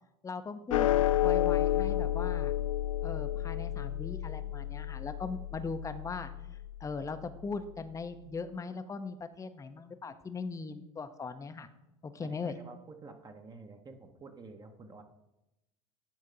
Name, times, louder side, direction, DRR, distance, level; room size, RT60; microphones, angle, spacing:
voice 1, 0.2-0.9 1.2-2.5 3.0-6.3 6.8-11.7 12.0-12.5, left 4 dB, 20° left, 10 dB, 0.7 m, -39 dB
sound 1, 0.7-7.2, left 13 dB, 85° left, 0.4 m, -31 dB
voice 2, 12.2-15.0, right 3 dB, 25° right, 5 dB, 1.0 m, -50 dB
8.7 x 3.6 x 6.8 m, 0.93 s
hypercardioid pair, 80°, 17 cm